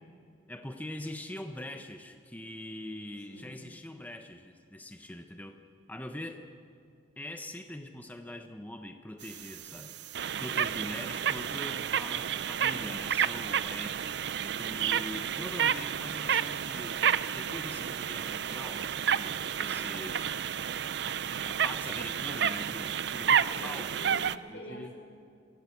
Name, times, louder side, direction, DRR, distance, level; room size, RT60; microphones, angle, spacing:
voice 1, 0.5-5.6 5.9-6.5 7.2-10.0 10.4-14.0 14.6-17.1 17.3-18.9 19.2-20.3 21.5-24.0 24.5-24.9, left 1 dB, 10° left, 6 dB, 0.8 m, -43 dB
sound 1, 9.2-24.4, right 8 dB, 60° right, 0.4 m, -31 dB
voice 2, 14.4-15.2 23.5-25.0, equal, 85° left, 1 dB, 5.7 m, -47 dB
23.5 x 16.5 x 8.2 m, 2.3 s
head